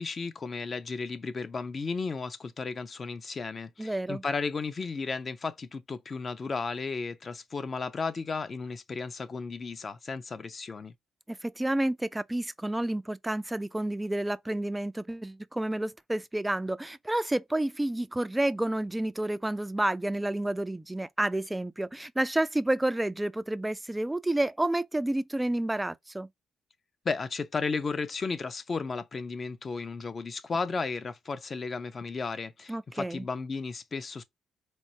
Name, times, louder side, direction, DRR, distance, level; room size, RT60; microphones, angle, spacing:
voice 1, 0.0-10.9 27.0-34.2, left 4 dB, 40° left, 0.5 m, -34 dB
voice 2, 3.8-4.2 11.3-26.3 32.7-33.3, right 1 dB, 10° right, 0.3 m, -30 dB
4.4 x 2.1 x 2.8 m
cardioid pair, 90°, 0 cm